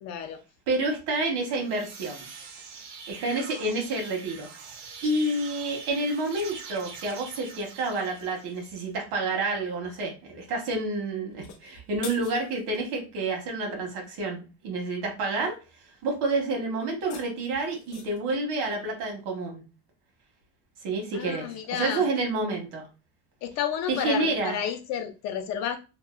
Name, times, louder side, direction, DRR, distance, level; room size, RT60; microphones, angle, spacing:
voice 1, 0.0-0.4 21.1-22.0 23.4-25.8, left 8 dB, 45° left, 0.4 m, -31 dB
voice 2, 0.7-2.3 3.1-4.5 5.0-15.6 16.0-19.6 20.8-22.9 23.9-24.5, right 2 dB, 75° right, 1.2 m, -29 dB
sound 1, 1.4-8.9, right 5 dB, 60° right, 0.6 m, -44 dB
sound 2, 11.3-12.9 16.8-18.3, left 6 dB, 80° left, 0.8 m, -45 dB
2.8 x 2.3 x 2.3 m
cardioid pair, 165°, 38 cm